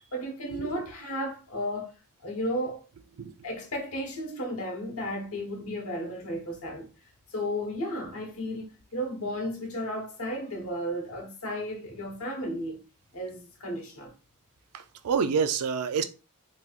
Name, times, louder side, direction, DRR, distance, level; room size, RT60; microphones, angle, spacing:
voice 1, 0.1-1.9 2.2-2.8 3.4-6.9 7.3-8.7 8.9-12.8 13.1-14.1, equal, 70° left, 1.1 m, -33 dB
voice 2, 14.7-16.0, right 6 dB, 80° right, 0.4 m, -28 dB
3.3 x 3.0 x 2.4 m
head